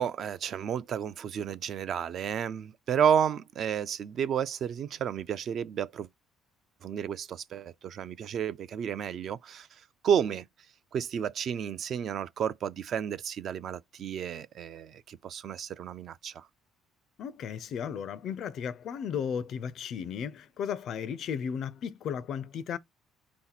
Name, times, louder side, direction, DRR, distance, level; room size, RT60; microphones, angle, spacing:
voice 1, 0.0-6.1 6.8-10.4 10.9-16.5, right 8 dB, 50° right, 0.3 m, -31 dB
voice 2, 17.2-22.8, left 7 dB, 55° left, 0.4 m, -35 dB
4.3 x 2.9 x 3.9 m
cardioid pair, 135°, 0 cm